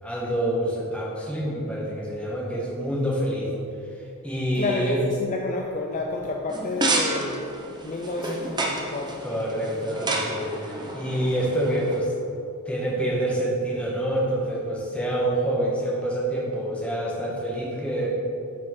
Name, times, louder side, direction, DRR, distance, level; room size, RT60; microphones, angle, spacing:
voice 1, 0.0-3.5 4.2-5.0 9.2-12.1 12.6-18.1, right 1 dB, 5° left, -5 dB, 1.3 m, -27 dB
voice 2, 4.6-7.5 7.8-9.2, left 3 dB, 35° left, 0 dB, 0.4 m, -30 dB
sound 1, 6.5-12.0, right 2 dB, 20° right, 0.7 m, -30 dB
9.4 x 4.3 x 4.2 m, 2.6 s
head